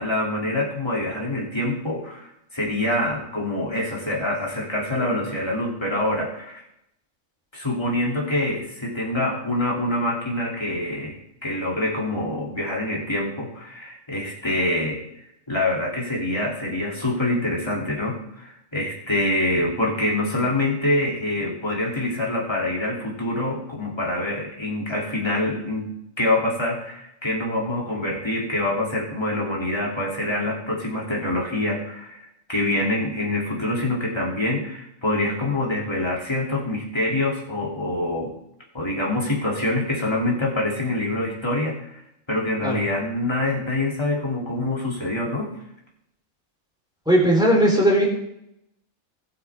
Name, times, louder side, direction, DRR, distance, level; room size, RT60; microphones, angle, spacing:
voice 1, 0.0-2.3 2.5-6.6 7.5-15.0 15.5-32.2 32.5-38.3 38.7-42.0 42.3-45.6, left 1 dB, 20° left, -3 dB, 3.2 m, -25 dB
voice 2, 47.1-48.1, right 1 dB, 5° right, -3 dB, 4.2 m, -17 dB
20.0 x 8.6 x 3.7 m, 0.79 s
omnidirectional pair, 1.5 m